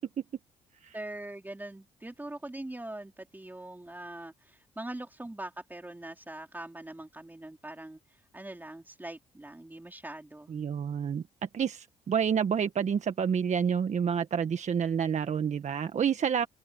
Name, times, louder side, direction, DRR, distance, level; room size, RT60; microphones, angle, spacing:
voice 1, 0.9-8.0 8.3-10.5, right 1 dB, 10° right, 3.9 m, -42 dB
voice 2, 10.5-11.2 11.5-16.5, right 7 dB, 50° right, 1.5 m, -28 dB
open air
supercardioid pair, 65°, 15 cm